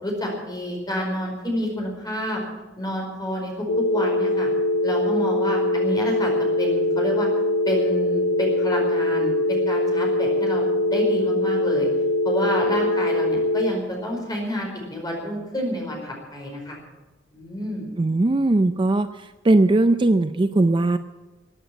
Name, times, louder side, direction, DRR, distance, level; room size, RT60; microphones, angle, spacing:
voice 1, 0.0-2.4 2.8-3.7 3.9-4.5 4.8-6.3 6.6-7.3 7.6-11.9 12.2-16.8 17.3-18.0, equal, 20° left, 0 dB, 4.9 m, -29 dB
sound 1, 3.7-13.7, left 1 dB, 90° left, 1.0 m, -22 dB
voice 2, 18.0-19.1 19.4-21.0, right 2 dB, 25° right, 10 dB, 0.4 m, -19 dB
15.5 x 9.2 x 9.0 m, 1.2 s
head